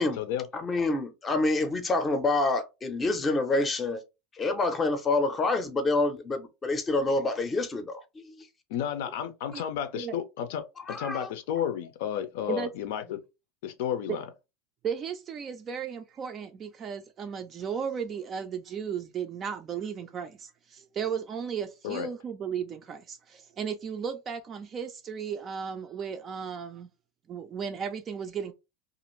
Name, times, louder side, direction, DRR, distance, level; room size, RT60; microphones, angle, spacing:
voice 1, 0.5-4.0 4.4-8.5 10.9-11.3, left 2 dB, 20° left, 0.6 m, -27 dB
voice 2, 8.7-13.2 13.6-14.2 21.8-22.1, left 9 dB, 75° left, 0.5 m, -32 dB
voice 3, 14.8-26.9 27.3-28.5, right 7 dB, 30° right, 0.3 m, -35 dB
2.5 x 2.5 x 3.0 m
supercardioid pair, 145°, 0 cm